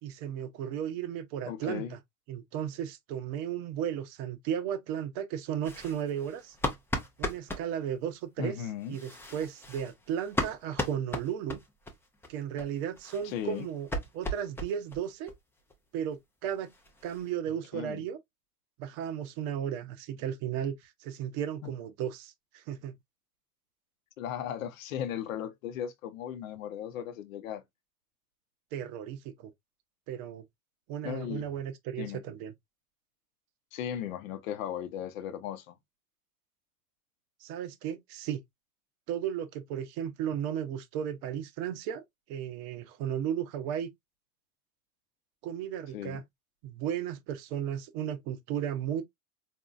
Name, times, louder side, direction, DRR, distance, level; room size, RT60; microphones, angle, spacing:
voice 1, 0.0-2.0 2.3-6.6 7.2-11.6 12.3-13.9 14.1-15.3 15.9-16.7 17.0-18.2 18.8-23.0 28.7-29.5 30.1-30.4 30.9-32.5 37.4-38.4 39.1-42.0 42.3-43.9 45.4-46.2 46.6-49.0, right 9 dB, 40° right, 0.7 m, -35 dB
voice 2, 1.5-1.9 8.4-9.0 13.2-13.7 17.7-18.0 21.6-21.7 24.2-27.6 31.0-31.5 32.0-32.2 33.7-35.8 45.9-46.2, left 9 dB, 60° left, 0.8 m, -36 dB
sound 1, 5.6-7.7 8.8-11.9 12.2-12.3 12.6-12.7 13.0-15.0 15.3-15.4 15.7-15.8 16.1-16.2 16.5-17.3, left 1 dB, 5° left, 0.5 m, -36 dB
4.2 x 2.6 x 2.4 m
hypercardioid pair, 95°, 44 cm